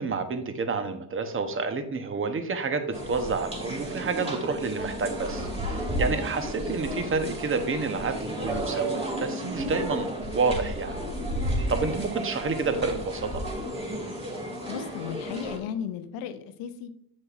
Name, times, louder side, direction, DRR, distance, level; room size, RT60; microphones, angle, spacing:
voice 1, 0.0-11.0 11.7-13.4, right 4 dB, 30° right, 8 dB, 1.0 m, -29 dB
sound 1, 2.9-15.6, equal, 15° right, 2.4 m, -32 dB
voice 2, 14.7-16.9, left 8 dB, 85° left, 10 dB, 0.8 m, -35 dB
7.4 x 6.4 x 2.5 m, 0.72 s
supercardioid pair, 85°, 43 cm